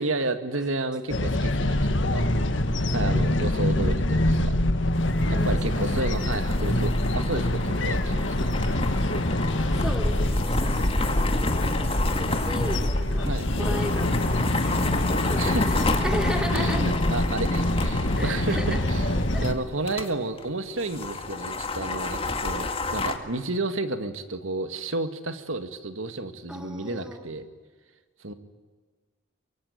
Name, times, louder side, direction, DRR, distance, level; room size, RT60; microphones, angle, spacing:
voice 1, 0.0-2.3 2.9-4.5 5.3-8.8 13.2-13.5 15.4-16.0 16.5-19.0 19.4-27.5 28.2-28.3, right 2 dB, 80° right, 9 dB, 2.0 m, -31 dB
sound 1, 1.1-19.5, left 1 dB, 65° left, 1.9 m, -25 dB
sound 2, 4.9-20.1 20.4-20.5 20.8-23.2, left 2 dB, 30° left, 2.0 m, -31 dB
voice 2, 5.2-5.9 6.3-6.6 9.5-11.1 12.2-13.3 13.6-14.9 15.3-16.9 18.1-18.8 19.3-19.5 26.5-27.2, equal, 5° right, 4 dB, 3.1 m, -35 dB
24.5 x 23.5 x 9.6 m, 1.4 s
head